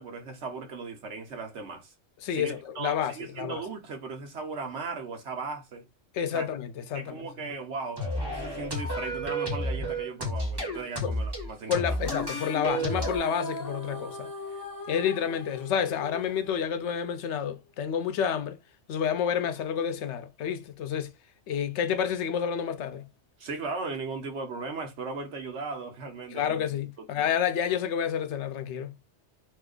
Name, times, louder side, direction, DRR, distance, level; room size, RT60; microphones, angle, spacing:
voice 1, 0.0-1.9 2.3-5.8 6.3-6.5 6.9-12.0 23.4-26.6 27.0-27.1, right 4 dB, 75° right, 1.1 m, -37 dB
voice 2, 2.2-3.6 6.1-7.3 11.0-11.1 11.7-14.3 14.9-18.6 18.9-21.1 21.5-23.1 26.3-29.0, left 8 dB, 75° left, 0.8 m, -29 dB
sound 1, 8.0-13.2, equal, 20° right, 1.0 m, -31 dB
sound 2, 11.9-17.4, left 1 dB, 25° left, 0.6 m, -39 dB
2.8 x 2.4 x 3.6 m
omnidirectional pair, 1.2 m